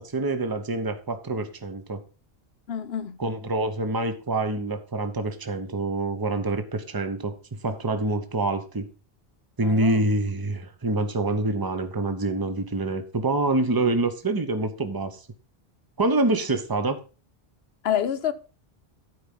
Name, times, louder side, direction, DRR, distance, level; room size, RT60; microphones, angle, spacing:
voice 1, 0.0-2.0 3.2-7.3 7.6-8.9 9.6-15.2 16.0-17.0, right 2 dB, 20° right, 1.0 m, -26 dB
voice 2, 2.7-3.2 9.6-10.0 17.8-18.3, left 9 dB, 80° left, 1.0 m, -27 dB
12.5 x 4.8 x 5.5 m
omnidirectional pair, 1.0 m